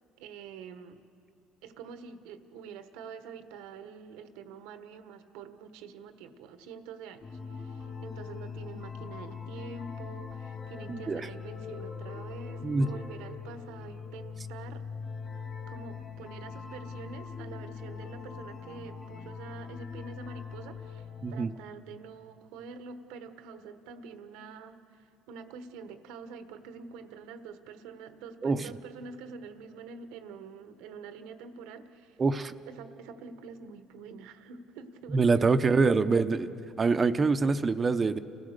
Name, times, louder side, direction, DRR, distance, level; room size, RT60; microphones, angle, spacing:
voice 1, 0.2-1.0 1.6-14.8 15.7-32.2 32.7-36.0, right 5 dB, 85° right, 9 dB, 1.3 m, -46 dB
sound 1, 7.2-21.3, left 6 dB, 40° left, 3.6 m, -41 dB
voice 2, 10.9-11.3 12.6-12.9 21.2-21.5 28.4-28.8 32.2-32.5 35.1-36.5 36.8-38.2, right 4 dB, 30° right, 10 dB, 0.8 m, -25 dB
29.5 x 16.0 x 6.7 m, 2.6 s
supercardioid pair, 100°, 0 cm